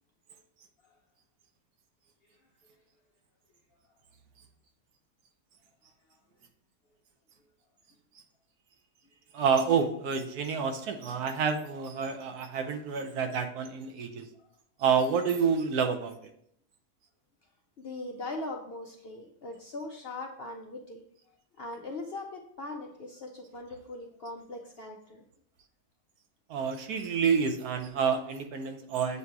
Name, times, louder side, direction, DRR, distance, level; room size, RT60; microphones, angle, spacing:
voice 1, 9.3-14.3 14.8-16.2 26.5-29.2, right 6 dB, 85° right, 6 dB, 1.2 m, -28 dB
voice 2, 17.8-21.0 21.6-25.2, left 2 dB, 60° left, 1 dB, 0.6 m, -40 dB
7.5 x 2.7 x 4.6 m, 0.71 s
omnidirectional pair, 1.6 m